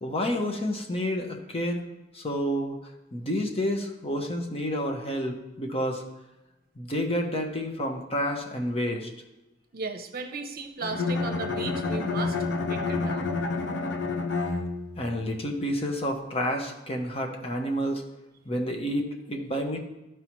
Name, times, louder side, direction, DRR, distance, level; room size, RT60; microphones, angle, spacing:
voice 1, 0.0-1.8 2.1-2.8 3.1-6.0 6.8-9.1 15.0-18.0 18.5-19.8, equal, 30° left, 3 dB, 1.0 m, -29 dB
voice 2, 9.7-12.4 12.7-13.3, right 4 dB, 50° right, 4 dB, 0.8 m, -35 dB
Bowed string instrument, 10.8-15.1, left 3 dB, 65° left, 0.9 m, -29 dB
13.0 x 4.7 x 3.1 m, 1.0 s
head